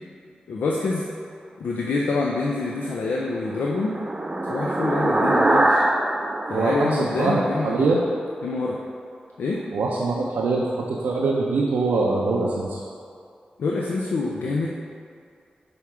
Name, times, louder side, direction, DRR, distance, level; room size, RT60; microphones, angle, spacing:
voice 1, 0.5-1.1 1.6-4.0 4.5-5.8 6.5-7.9 8.4-8.8 9.4-9.6 13.6-14.7, left 3 dB, 85° left, -2 dB, 0.4 m, -26 dB
sound 1, 2.9-7.7, right 1 dB, 35° right, 0.7 m, -23 dB
voice 2, 6.5-8.1 9.7-12.8, right 3 dB, 90° right, -5 dB, 0.5 m, -23 dB
5.8 x 3.5 x 4.8 m, 2.3 s
cardioid pair, 45°, 3 cm